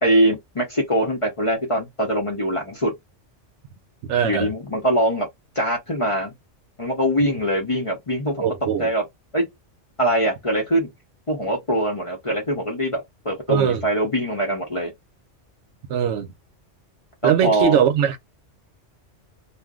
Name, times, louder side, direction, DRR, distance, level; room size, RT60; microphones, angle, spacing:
voice 1, 0.0-2.9 4.2-5.3 5.6-6.3 6.8-8.5 8.8-9.0 9.3-9.5 10.0-10.9 11.3-14.9 17.2-17.8, right 1 dB, 35° left, 0.6 m, -22 dB
voice 2, 4.1-4.5 8.4-8.9 13.5-13.8 15.9-16.3 17.2-18.2, right 8 dB, 75° right, 0.9 m, -20 dB
2.4 x 2.0 x 3.5 m
omnidirectional pair, 1.2 m